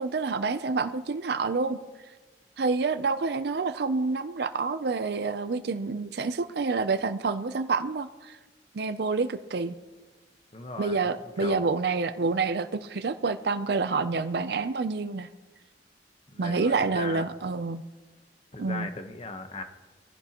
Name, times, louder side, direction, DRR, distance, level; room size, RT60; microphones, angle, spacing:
voice 1, 0.0-1.8 2.6-8.4 8.7-9.7 10.8-15.3 16.4-17.8 18.6-18.9, right 4 dB, 65° right, 10 dB, 0.5 m, -28 dB
voice 2, 10.5-11.6 16.3-17.3 18.5-19.6, left 3 dB, 35° left, 6 dB, 1.0 m, -38 dB
21.0 x 15.0 x 3.0 m, 1.3 s
head